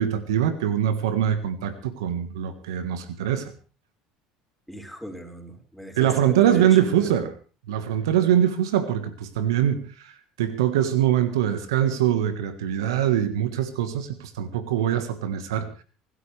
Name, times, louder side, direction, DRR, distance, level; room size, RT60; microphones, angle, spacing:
voice 1, 0.0-3.5 6.0-7.3 7.7-15.7, right 10 dB, 85° right, 11 dB, 1.5 m, -23 dB
voice 2, 4.7-7.1, equal, ahead, 1 dB, 5.4 m, -38 dB
25.5 x 13.0 x 3.4 m, 0.36 s
hypercardioid pair, 80°, 2 cm